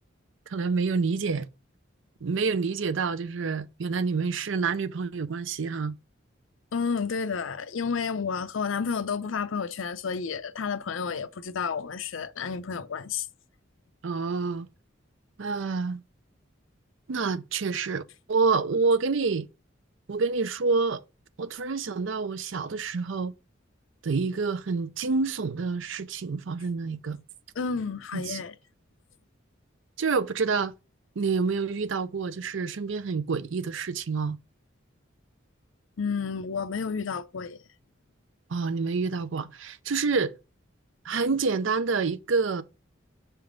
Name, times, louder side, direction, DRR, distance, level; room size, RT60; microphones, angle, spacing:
voice 1, 0.5-1.5 2.2-5.9 14.0-14.7 15.4-16.0 17.1-18.0 18.3-19.5 20.1-21.0 21.4-23.3 24.0-27.2 28.1-28.4 30.0-30.7 31.2-34.4 38.5-40.3 41.0-42.6, right 4 dB, 75° right, 0.5 m, -27 dB
voice 2, 6.7-13.3 27.6-28.5 36.0-37.6, left 5 dB, 85° left, 0.5 m, -31 dB
5.7 x 3.4 x 5.0 m
head